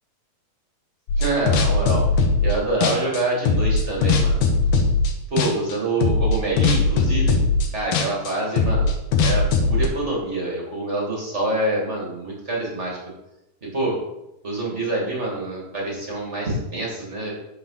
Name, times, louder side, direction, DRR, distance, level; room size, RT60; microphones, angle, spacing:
sound 1, 1.1-2.6 2.8-5.1 5.4-5.7 6.0-9.9, left 4 dB, 70° left, 2.1 m, -19 dB
voice 1, 1.1-2.0 2.4-4.4 5.3-7.4 7.7-8.9 9.2-13.0 13.6-14.0 14.4-17.3, right 2 dB, 35° right, -2 dB, 1.2 m, -26 dB
8.7 x 4.6 x 5.6 m, 0.89 s
omnidirectional pair, 4.1 m